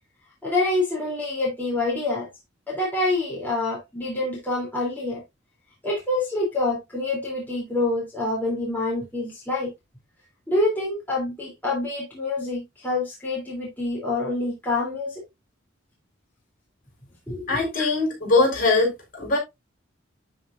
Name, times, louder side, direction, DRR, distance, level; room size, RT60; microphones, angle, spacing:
voice 1, 0.4-2.3 2.7-5.2 5.8-9.7 10.5-15.2 17.3-17.9, left 2 dB, 10° left, 3.4 m, -26 dB
voice 2, 17.5-19.4, left 3 dB, 45° left, 5.8 m, -21 dB
12.0 x 5.1 x 2.6 m
head